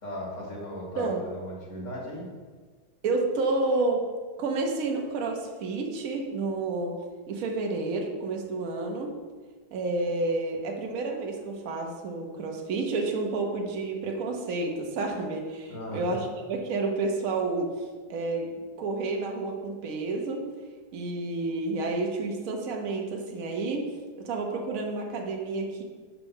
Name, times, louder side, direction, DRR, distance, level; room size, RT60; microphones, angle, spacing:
voice 1, 0.0-2.3 15.7-16.0, equal, 45° left, -3 dB, 1.8 m, -37 dB
voice 2, 3.0-4.0 4.4-7.0 7.3-9.1 9.7-17.8 18.1-18.5 18.8-20.4 20.9-23.8 24.2-25.8, right 3 dB, 60° right, 2 dB, 1.2 m, -30 dB
5.1 x 4.6 x 5.4 m, 1.5 s
omnidirectional pair, 1.8 m